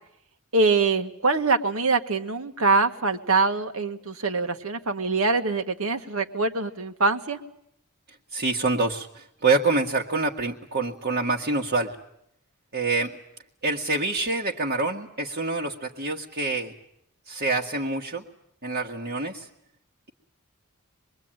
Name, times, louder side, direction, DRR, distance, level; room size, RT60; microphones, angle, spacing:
voice 1, 0.5-7.4, right 3 dB, 75° right, 7 dB, 1.8 m, -24 dB
voice 2, 8.3-11.9 12.7-13.1 13.6-16.7 17.3-18.2 18.6-19.5, right 3 dB, 50° right, -1 dB, 1.7 m, -26 dB
25.5 x 21.5 x 9.0 m, 0.74 s
head